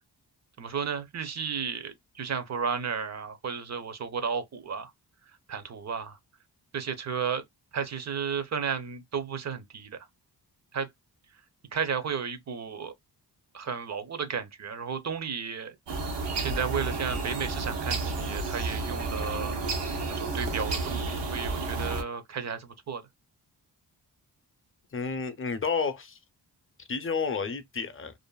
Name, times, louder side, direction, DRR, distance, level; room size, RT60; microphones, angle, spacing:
voice 1, 0.6-4.9 5.5-6.2 6.7-7.4 7.7-10.1 10.7-10.9 11.7-12.9 13.5-15.8 16.4-19.5 20.1-23.0, right 6 dB, 40° right, 0.6 m, -33 dB
sound 1, 15.9-22.0, right 3 dB, 85° right, 0.8 m, -31 dB
voice 2, 24.9-26.2 26.9-28.1, left 5 dB, 30° left, 0.6 m, -30 dB
2.6 x 2.5 x 2.2 m
cardioid pair, 70°, 41 cm